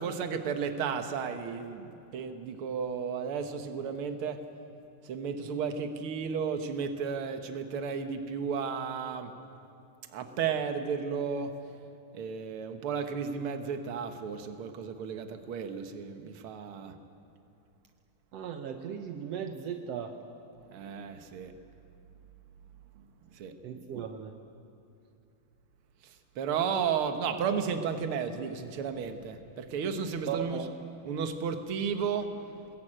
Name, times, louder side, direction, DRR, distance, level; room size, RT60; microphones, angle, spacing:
voice 1, 0.0-4.4 5.0-9.3 10.1-11.5 12.1-16.9 20.7-21.5 23.3-23.5 26.0-30.7 31.0-32.7, right 6 dB, 60° right, 6 dB, 1.4 m, -33 dB
voice 2, 18.3-20.1 23.6-24.3 30.3-30.7, right 8 dB, 80° right, 5 dB, 1.4 m, -37 dB
25.0 x 21.0 x 8.9 m, 2.6 s
omnidirectional pair, 4.4 m